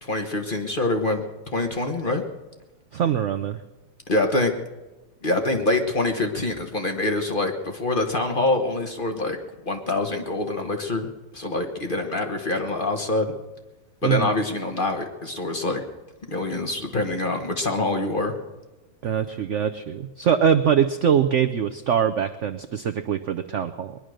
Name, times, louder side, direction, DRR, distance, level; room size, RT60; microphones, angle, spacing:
voice 1, 0.0-1.2 1.5-2.2 4.1-4.5 5.2-9.4 9.7-11.1 11.3-13.3 14.0-15.8 16.3-18.3, left 2 dB, 30° left, 4 dB, 1.2 m, -25 dB
voice 2, 2.9-3.6 14.0-14.3 19.0-24.0, right 8 dB, 70° right, 8 dB, 0.7 m, -23 dB
21.0 x 10.5 x 6.4 m, 1.1 s
omnidirectional pair, 2.0 m